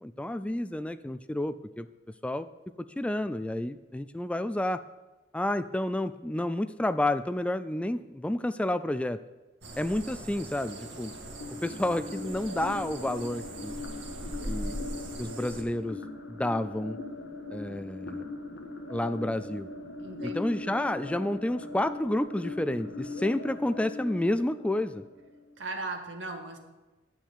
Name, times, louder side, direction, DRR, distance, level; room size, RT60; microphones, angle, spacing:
voice 1, 0.0-1.9 2.2-2.5 3.0-4.8 5.3-9.2 9.8-11.1 11.6-13.7 14.5-14.8 15.2-16.0 16.3-17.0 17.5-18.2 18.9-19.7 20.2-25.0, left 1 dB, 5° left, 12 dB, 0.3 m, -30 dB
sound 1, 9.6-15.6, right 1 dB, 70° right, 1.9 m, -41 dB
sound 2, 10.6-25.5, left 2 dB, 85° left, 1.5 m, -41 dB
voice 2, 20.0-20.7 25.6-26.6, right 3 dB, 90° right, 4 dB, 1.7 m, -38 dB
11.5 x 6.1 x 8.5 m, 1.2 s
head